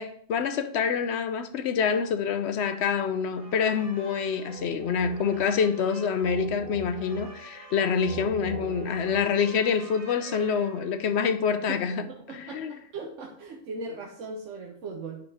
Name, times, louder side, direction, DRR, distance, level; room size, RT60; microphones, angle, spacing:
voice 1, 0.0-12.0 12.3-12.7, left 6 dB, 65° left, 0.8 m, -26 dB
sound 1, 3.3-11.1, right 2 dB, 45° right, 1.2 m, -43 dB
voice 2, 11.7-15.2, right 3 dB, 70° right, 1.2 m, -39 dB
9.1 x 5.3 x 3.5 m
omnidirectional pair, 1.4 m